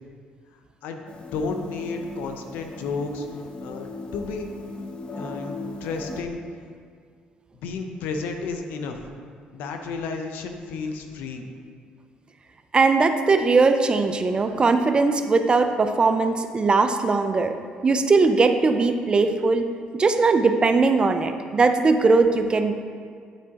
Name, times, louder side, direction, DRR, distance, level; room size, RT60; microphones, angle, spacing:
sound 1, 1.1-6.2, left 2 dB, 35° left, 0.6 m, -38 dB
voice 1, 1.3-3.3 3.6-4.5 5.2-6.4 7.6-9.0 9.5-11.5, left 4 dB, 80° left, 5 dB, 0.6 m, -32 dB
voice 2, 12.7-17.5 17.8-19.7 19.9-22.7, right 4 dB, 30° right, 8 dB, 0.4 m, -20 dB
8.9 x 4.6 x 2.9 m, 2.1 s
cardioid pair, 85°, 3 cm